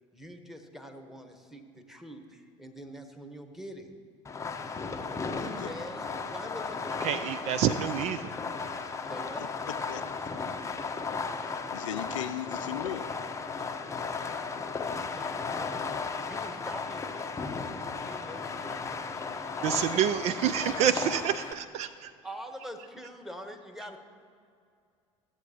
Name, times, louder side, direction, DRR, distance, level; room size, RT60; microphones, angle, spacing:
voice 1, 0.1-3.9 5.2-7.6 9.0-9.4 14.8-15.7 16.3-17.2 18.1-21.3 22.2-24.0, equal, ahead, 6 dB, 1.2 m, -45 dB
Fireworks, 4.2-21.5, left 4 dB, 15° left, 0.7 m, -35 dB
voice 2, 5.4-5.7 9.4-9.5 9.9-10.0 11.7-13.1, left 10 dB, 70° left, 10 dB, 0.4 m, -37 dB
voice 3, 7.0-8.3 19.6-22.1, right 9 dB, 40° right, 13 dB, 0.4 m, -28 dB
14.5 x 8.1 x 2.9 m, 2.3 s
figure-of-eight pair, 65°, 17 cm